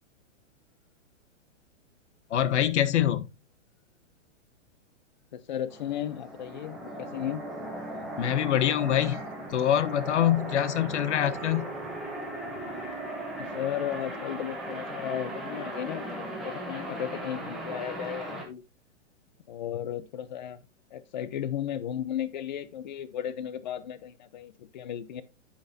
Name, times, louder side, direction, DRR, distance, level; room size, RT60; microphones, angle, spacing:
voice 1, 2.3-3.3 8.2-9.2 9.5-11.7, left 11 dB, 70° left, 1.0 m, -25 dB
voice 2, 5.3-7.4 13.4-18.6 19.5-20.6 20.9-25.2, left 10 dB, 40° left, 0.7 m, -35 dB
sound 1, 5.7-18.4, right 1 dB, ahead, 1.2 m, -37 dB
8.5 x 8.2 x 2.8 m
hypercardioid pair, 175°, 37 cm